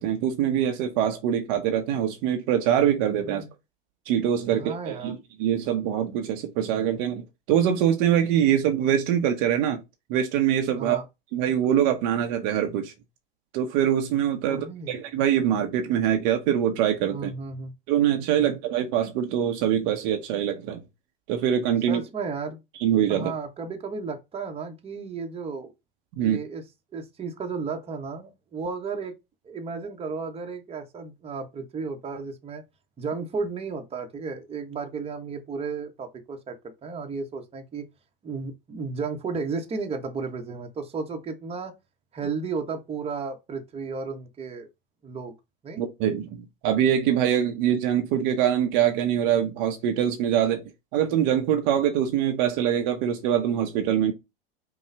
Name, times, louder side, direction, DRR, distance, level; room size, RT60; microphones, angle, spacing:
voice 1, 0.0-3.4 4.1-9.8 10.1-11.0 11.3-12.9 13.5-17.3 17.9-20.8 21.3-22.0 22.8-23.3 26.2-26.4 45.8-50.6 50.9-54.1, right 10 dB, 50° right, 0.9 m, -24 dB
voice 2, 4.5-5.1 10.7-11.0 14.4-15.0 17.1-17.7 18.4-18.6 21.9-22.6 23.1-25.7 26.2-26.6 26.9-29.1 29.4-32.6 33.0-36.5 36.8-37.8 38.2-41.7 42.1-44.7 45.0-45.3 45.6-45.8, right 4 dB, 20° right, 1.1 m, -33 dB
5.4 x 2.4 x 3.3 m
hypercardioid pair, 95°, 29 cm